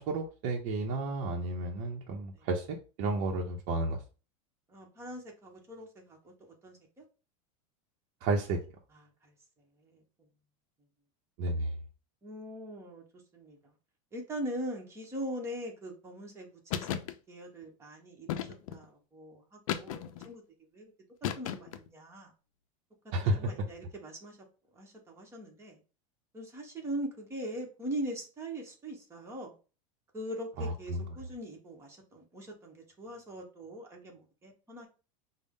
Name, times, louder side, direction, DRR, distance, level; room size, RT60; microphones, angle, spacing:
voice 1, 0.0-4.0 8.2-8.6 11.4-11.8 23.1-23.4 30.6-31.1, right 2 dB, 50° right, 0.6 m, -32 dB
voice 2, 4.7-7.0 8.9-9.3 9.8-10.0 12.2-13.6 14.1-17.0 17.3-20.4 20.7-20.9 21.4-22.3 23.0-24.4 24.7-25.8 26.3-29.5 30.1-34.9, right 1 dB, 15° right, 1.0 m, -41 dB
sound 1, 16.7-17.1 18.3-18.8 19.7-20.3 21.2-21.9, left 10 dB, 85° left, 0.5 m, -35 dB
5.1 x 2.1 x 3.6 m
supercardioid pair, 145°, 17 cm